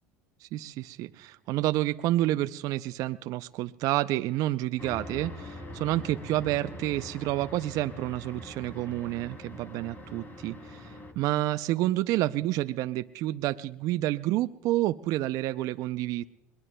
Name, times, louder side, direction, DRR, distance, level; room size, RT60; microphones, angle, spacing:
voice 1, 0.4-16.2, right 15 dB, 60° right, 11 dB, 0.4 m, -29 dB
sound 1, 4.8-11.1, left 1 dB, 30° left, 2.7 m, -43 dB
22.0 x 20.5 x 2.2 m, 0.97 s
supercardioid pair, 85°, 7 cm